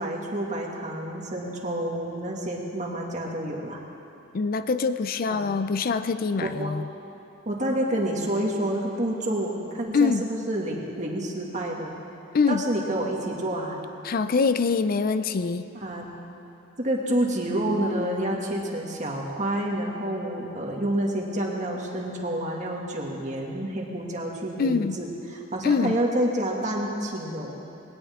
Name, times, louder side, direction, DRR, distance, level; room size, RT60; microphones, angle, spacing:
voice 1, 0.0-3.8 5.3-5.5 6.4-6.7 7.5-11.9 12.5-13.8 15.7-16.1 16.8-27.5, right 1 dB, 40° right, -1 dB, 2.1 m, -28 dB
voice 2, 4.3-6.9 9.9-10.3 12.3-12.7 14.0-15.7 24.6-25.0 25.6-26.0, left 4 dB, 50° left, 11 dB, 0.4 m, -24 dB
20.5 x 18.0 x 3.7 m, 2.9 s
head